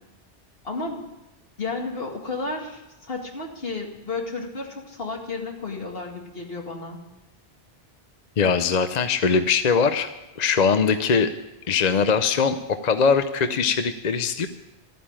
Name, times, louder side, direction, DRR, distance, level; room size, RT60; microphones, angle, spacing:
voice 1, 0.6-1.1 1.6-7.0, left 3 dB, 65° left, 1 dB, 2.3 m, -32 dB
voice 2, 8.4-10.1 10.4-11.3 11.7-14.5, left 5 dB, 45° left, 9 dB, 0.7 m, -21 dB
13.0 x 9.5 x 8.8 m, 0.98 s
omnidirectional pair, 1.1 m